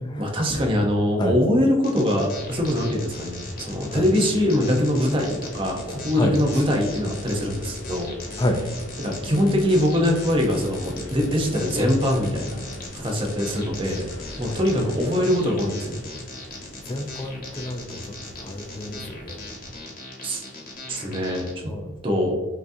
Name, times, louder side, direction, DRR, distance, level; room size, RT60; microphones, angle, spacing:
voice 1, 0.2-8.1 9.0-12.6 12.9-14.1 14.4-16.0 20.2-20.4 20.9-21.6 22.0-22.4, left 1 dB, 25° right, 1 dB, 0.8 m, -23 dB
sound 1, 1.8-21.5, left 2 dB, 45° left, 1.1 m, -39 dB
sound 2, 2.3-19.8, left 1 dB, 75° left, 0.6 m, -41 dB
voice 2, 16.9-17.8 18.4-19.4 21.7-21.9, left 1 dB, 20° left, 5 dB, 0.4 m, -28 dB
5.8 x 2.8 x 2.6 m, 1.3 s
head